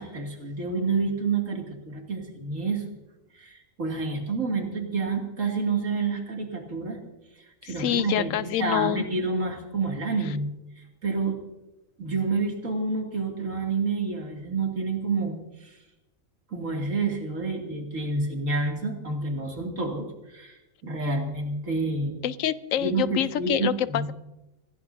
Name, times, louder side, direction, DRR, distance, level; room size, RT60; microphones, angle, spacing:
voice 1, 0.0-2.8 3.3-7.0 7.6-10.5 10.8-11.4 12.0-15.4 15.6-15.7 16.5-22.1 22.8-24.1, right 3 dB, 70° right, 1 dB, 2.9 m, -29 dB
voice 2, 7.6-9.0 22.2-24.1, left 11 dB, 75° left, 16 dB, 1.0 m, -26 dB
26.0 x 16.0 x 2.7 m, 0.99 s
omnidirectional pair, 1.4 m